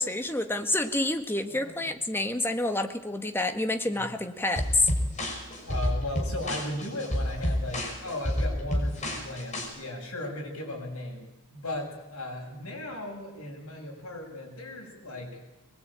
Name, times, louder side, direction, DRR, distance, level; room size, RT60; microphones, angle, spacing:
voice 1, 0.0-4.9, left 2 dB, 10° left, 6 dB, 1.5 m, -28 dB
voice 2, 1.5-1.9 3.9-4.0 5.6-15.4, left 1 dB, 70° left, 1 dB, 7.4 m, -37 dB
sound 1, 4.6-9.7, equal, 35° left, 5.7 m, -29 dB
22.5 x 21.0 x 8.9 m, 0.99 s
head